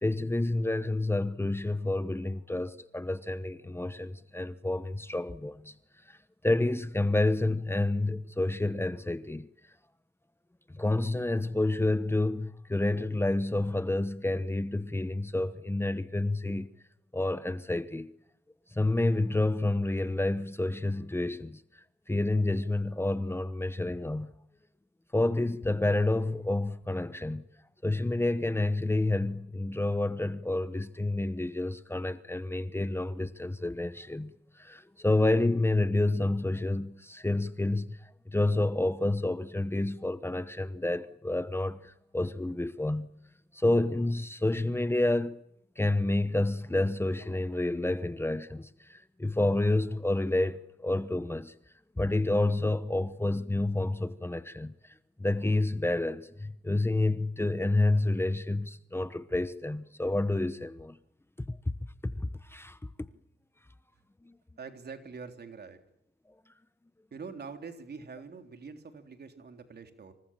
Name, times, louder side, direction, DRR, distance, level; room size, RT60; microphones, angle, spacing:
voice 1, 0.0-5.7 6.1-6.2 6.4-9.5 10.7-16.7 17.1-18.1 18.7-24.3 25.1-27.4 27.8-43.1 43.5-45.4 45.8-51.5 52.0-54.7 55.2-61.0 61.5-61.6 62.0-62.1 62.4-62.8 64.2-64.3, left 2 dB, 15° left, 1.1 m, -29 dB
voice 2, 64.6-65.8 67.1-70.1, right 5 dB, 60° right, 3.6 m, -44 dB
27.0 x 26.0 x 7.5 m
cardioid pair, 85°, 19 cm